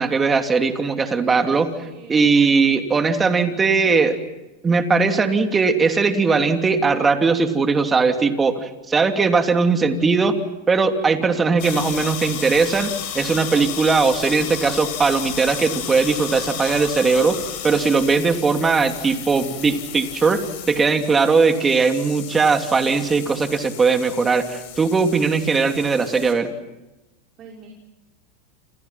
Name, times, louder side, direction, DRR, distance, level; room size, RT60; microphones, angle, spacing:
voice 1, 0.0-1.7 2.1-4.2 4.6-10.4 10.7-17.4 17.6-26.5, right 4 dB, 20° right, 6 dB, 3.0 m, -19 dB
voice 2, 1.8-2.4 27.4-27.7, right 5 dB, 40° right, 0 dB, 5.5 m, -43 dB
sound 1, 11.6-26.3, left 10 dB, 60° left, 7.0 m, -33 dB
28.5 x 28.5 x 5.9 m, 0.97 s
hypercardioid pair, 105°, 0 cm